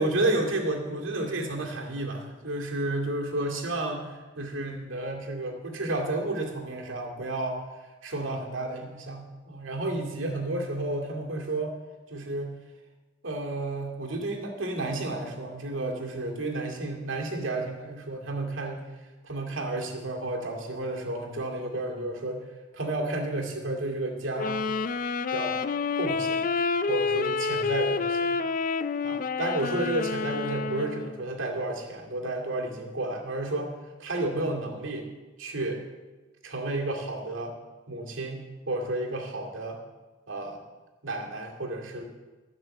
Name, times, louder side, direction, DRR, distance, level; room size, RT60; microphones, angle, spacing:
voice 1, 0.0-7.6 8.0-11.7 12.1-12.5 13.2-18.8 19.2-22.4 22.7-24.6 25.3-25.6 26.0-26.5 26.9-28.4 29.0-33.7 34.0-35.1 35.4-35.8 36.4-37.5 37.9-39.8 40.3-40.6 41.0-42.0, right 2 dB, 85° right, 0 dB, 2.3 m, -31 dB
Wind instrument woodwind instrument, 24.4-31.2, left 4 dB, 45° left, 0.4 m, -28 dB
14.5 x 6.0 x 7.7 m, 1.2 s
head